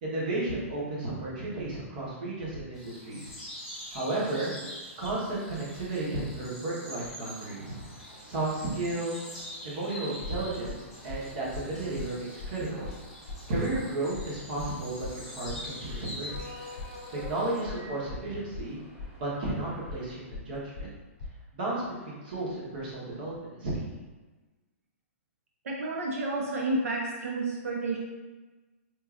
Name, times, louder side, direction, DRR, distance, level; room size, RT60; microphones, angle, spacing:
voice 1, 0.0-3.4 3.9-4.5 5.0-7.8 8.2-9.3 9.6-12.9 13.5-16.4 17.1-18.8 19.2-20.9 21.5-23.9, right 2 dB, 40° right, -6 dB, 1.1 m, -33 dB
sound 1, 2.7-17.6, equal, ahead, 1.1 m, -45 dB
sound 2, 7.3-20.2, left 1 dB, 20° right, 0.7 m, -50 dB
sound 3, 10.2-21.3, left 4 dB, 35° left, 0.5 m, -40 dB
voice 2, 25.6-28.0, right 2 dB, 85° right, -1 dB, 0.6 m, -30 dB
4.5 x 2.6 x 2.4 m, 1.2 s
hypercardioid pair, 170°, 8 cm